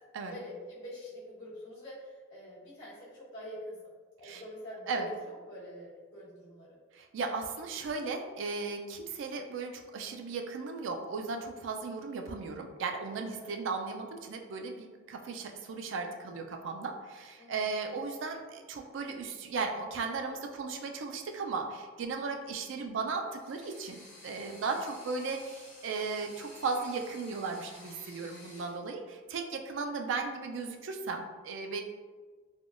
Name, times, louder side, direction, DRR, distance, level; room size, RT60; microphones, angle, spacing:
voice 1, 0.3-3.9 4.2-6.8 13.3-13.5 17.4-17.7 24.6-24.9, equal, 65° left, -11 dB, 1.1 m, -45 dB
voice 2, 6.9-31.8, right 4 dB, 70° right, 4 dB, 0.3 m, -36 dB
sound 1, 23.3-28.8, left 2 dB, 35° left, 0.8 m, -53 dB
3.5 x 2.2 x 2.4 m, 1.4 s
head